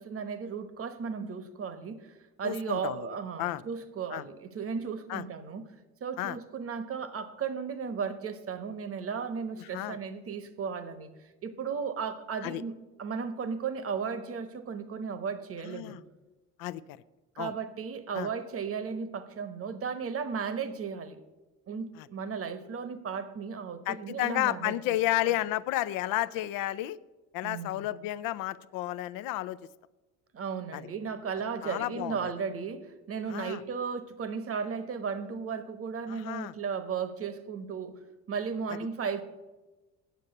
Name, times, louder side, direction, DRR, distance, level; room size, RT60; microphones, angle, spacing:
voice 1, 0.0-5.6 6.0-11.1 11.4-16.0 17.3-21.2 21.7-24.8 25.2-25.3 27.4-27.8 30.3-39.2, right 6 dB, 40° right, 12 dB, 1.1 m, -35 dB
voice 2, 2.4-3.1 3.4-3.6 4.1-4.2 5.1-5.2 6.2-6.4 9.6-10.0 12.4-12.6 15.6-16.0 16.6-17.0 17.4-17.5 18.1-18.3 22.0-22.1 23.9-27.0 27.3-29.6 30.7-30.9 31.6-32.3 33.3-33.6 36.1-36.5, left 15 dB, 75° left, 15 dB, 0.5 m, -32 dB
9.4 x 7.2 x 6.6 m, 1.2 s
supercardioid pair, 85°, 35 cm